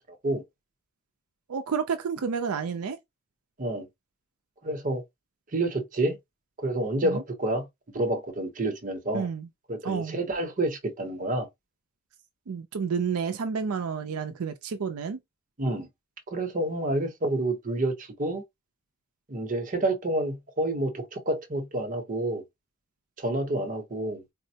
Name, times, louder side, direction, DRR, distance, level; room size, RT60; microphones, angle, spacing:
voice 1, 1.5-3.0 7.0-7.2 9.1-9.5 9.8-10.2 12.5-15.2, right 6 dB, 80° right, 0.5 m, -30 dB
voice 2, 4.6-5.0 5.5-6.2 6.6-7.7 7.9-9.3 9.7-11.5 15.6-15.9 16.3-18.4 19.3-22.4 23.2-24.2, right 1 dB, 40° right, 0.8 m, -28 dB
4.2 x 2.0 x 2.7 m
head